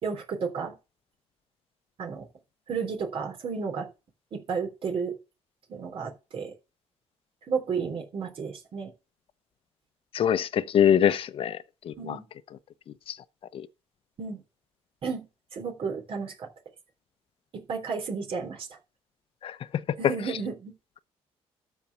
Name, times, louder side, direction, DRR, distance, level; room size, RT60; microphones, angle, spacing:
voice 1, 0.0-0.7 2.0-2.3 2.7-3.9 4.3-5.2 5.7-6.5 7.5-8.9 12.0-12.3 14.2-14.4 15.0-15.3 15.5-16.5 17.5-18.8 20.0-20.7, right 5 dB, 55° right, 3.5 m, -32 dB
voice 2, 10.1-11.6 11.9-12.2 13.5-13.6 19.4-19.5, left 9 dB, 55° left, 0.8 m, -23 dB
13.0 x 4.6 x 7.2 m
cardioid pair, 105°, 11 cm